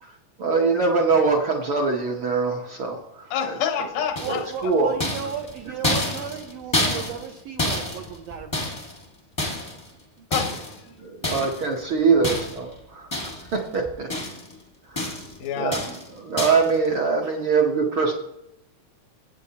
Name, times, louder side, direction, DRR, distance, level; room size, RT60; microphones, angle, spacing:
voice 1, 0.4-3.5 4.2-4.9 11.0-14.1 14.9-15.1 15.6-15.8 16.2-18.1, right 4 dB, 65° right, 0 dB, 1.3 m, -23 dB
voice 2, 3.3-4.4 10.3-10.8 11.3-11.5 15.4-15.8, left 8 dB, 90° left, 7 dB, 2.5 m, -28 dB
sound 1, 4.2-4.6 5.0-9.0 9.4-9.9 10.3-10.8 11.2-11.7 12.2-12.7 13.1-13.6 13.8-14.5 15.0-15.4 15.7-16.1 16.4-16.7, left 1 dB, 25° left, 0.5 m, -28 dB
voice 3, 4.2-8.7 17.2-17.3, right 7 dB, 85° right, 5 dB, 1.4 m, -35 dB
15.0 x 8.2 x 2.8 m, 0.84 s
omnidirectional pair, 3.5 m